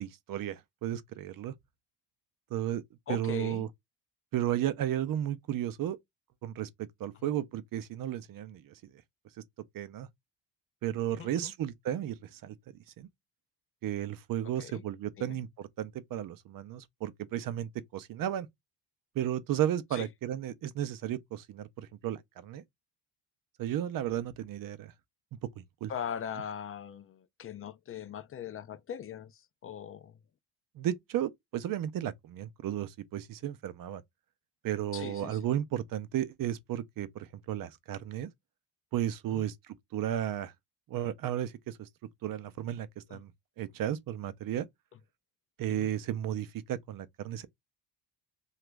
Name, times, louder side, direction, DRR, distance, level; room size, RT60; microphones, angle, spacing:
voice 1, 0.0-1.5 2.5-2.8 3.1-3.7 4.3-6.0 6.4-6.7 7.0-8.7 9.7-10.1 10.8-12.6 13.0-13.1 13.8-18.5 19.2-22.6 23.6-24.9 25.6-25.9 30.8-34.0 34.6-38.3 38.9-40.5 40.9-41.9 42.2-43.3 43.6-44.7 45.6-47.5, right 11 dB, 55° right, 0.5 m, -34 dB
voice 2, 3.1-3.7 7.2-7.3 11.1-11.5 14.6-14.8 15.2-15.4 19.9-20.1 25.9-30.2 34.9-35.4 39.3-39.4 43.1-43.2 45.7-45.9, left 8 dB, 35° left, 0.4 m, -40 dB
2.9 x 2.4 x 3.3 m
cardioid pair, 115°, 43 cm